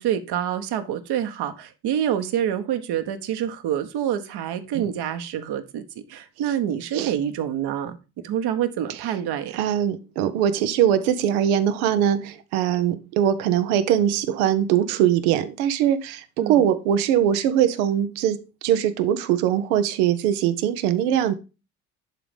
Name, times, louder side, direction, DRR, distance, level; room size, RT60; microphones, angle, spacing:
voice 1, 0.0-5.8 6.1-8.0 8.2-9.6 16.4-16.7, right 10 dB, 60° right, 1.4 m, -27 dB
voice 2, 9.5-21.3, right 10 dB, 75° right, 1.1 m, -22 dB
11.0 x 4.0 x 5.2 m
hypercardioid pair, 60°, 44 cm